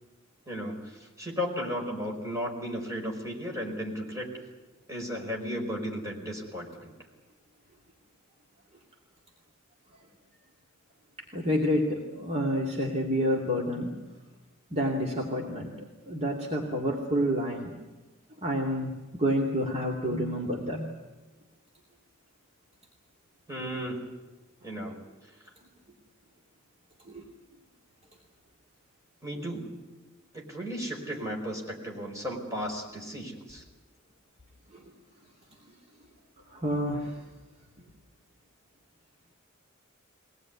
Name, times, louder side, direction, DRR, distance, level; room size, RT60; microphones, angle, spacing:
voice 1, 0.5-0.9 1.2-4.3 4.9-6.9 23.5-24.0 24.6-25.0 29.2-29.7 30.3-33.6, equal, 15° right, -1 dB, 5.1 m, -34 dB
voice 2, 11.3-14.0 14.7-15.7 16.1-17.7 18.4-20.9 27.1-27.2 34.7-34.8 36.5-37.2, equal, 30° right, -2 dB, 2.7 m, -29 dB
22.5 x 19.0 x 9.6 m, 1.2 s
head